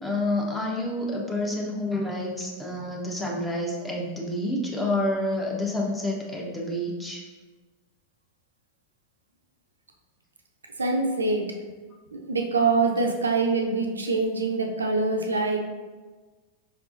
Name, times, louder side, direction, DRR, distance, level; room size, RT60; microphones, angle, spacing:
voice 1, 0.0-7.2, left 1 dB, 10° left, -3 dB, 0.8 m, -28 dB
voice 2, 10.8-11.4 12.1-15.6, right 3 dB, 75° right, 2 dB, 0.4 m, -24 dB
4.9 x 3.5 x 2.6 m, 1.3 s
figure-of-eight pair, 90°, 0 cm